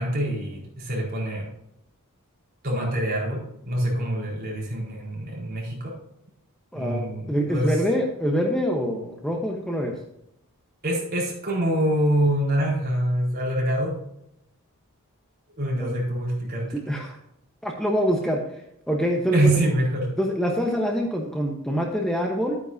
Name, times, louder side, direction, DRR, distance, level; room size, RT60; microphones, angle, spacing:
voice 1, 0.0-1.5 2.6-5.9 6.7-7.8 10.8-14.0 15.6-16.8 19.3-20.1, right 1 dB, 45° right, -4 dB, 4.3 m, -25 dB
voice 2, 6.7-9.9 15.8-15.9 16.9-17.2 17.6-18.4 18.9-19.6 20.2-22.6, equal, 5° left, 0 dB, 1.0 m, -25 dB
11.5 x 9.4 x 2.7 m, 0.79 s
head